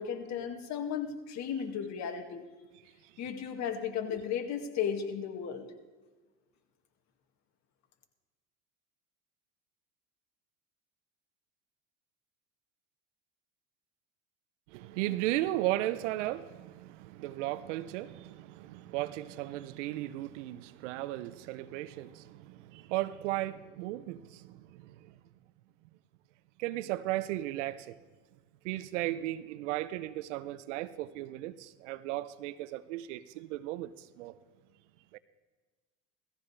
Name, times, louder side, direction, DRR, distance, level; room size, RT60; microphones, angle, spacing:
voice 1, 0.0-2.4 3.2-5.7, left 8 dB, 50° left, 2.1 m, -35 dB
voice 2, 14.7-25.1 26.6-28.0 28.6-34.4 35.1-35.2, right 15 dB, 80° right, 0.7 m, -36 dB
18.0 x 14.5 x 3.3 m
supercardioid pair, 95°, 35 cm